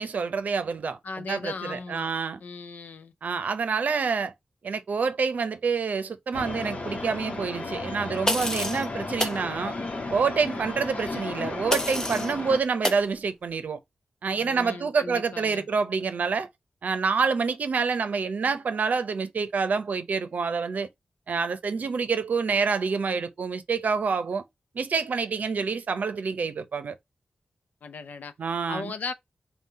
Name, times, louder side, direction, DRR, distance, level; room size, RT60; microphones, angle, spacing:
voice 1, 0.0-2.4 3.2-4.3 4.6-9.8 10.1-13.8 14.2-16.5 16.8-20.9 21.3-24.4 24.7-26.9 28.4-28.9, right 5 dB, 75° right, 0.6 m, -27 dB
voice 2, 1.0-2.1 2.4-3.1 14.3-15.7 27.8-28.3 28.7-29.1, left 4 dB, 85° left, 0.5 m, -37 dB
sound 1, 6.3-12.6, left 3 dB, 55° left, 1.0 m, -34 dB
sound 2, 8.3-8.9 9.2-9.4 11.7-12.3 12.8-13.0, left 1 dB, 20° left, 0.7 m, -28 dB
3.7 x 2.3 x 4.1 m
cardioid pair, 65°, 3 cm